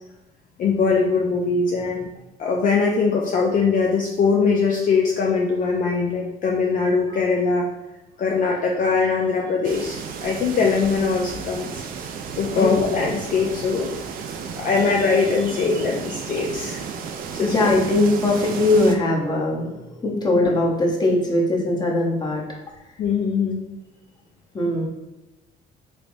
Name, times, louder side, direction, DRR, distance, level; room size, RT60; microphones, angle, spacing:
voice 1, 0.6-2.1 2.4-7.7 8.2-11.8 12.4-13.9 14.6-16.8 17.3-17.7 20.1-20.2 23.0-23.6, left 4 dB, 50° left, -1 dB, 0.5 m, -21 dB
sound 1, 9.6-19.0, right 6 dB, 55° right, 0.4 m, -33 dB
voice 2, 17.4-22.4 24.5-24.9, left 2 dB, 25° left, -2 dB, 0.8 m, -20 dB
3.2 x 3.0 x 2.6 m, 1.0 s
cardioid pair, 110°, 17 cm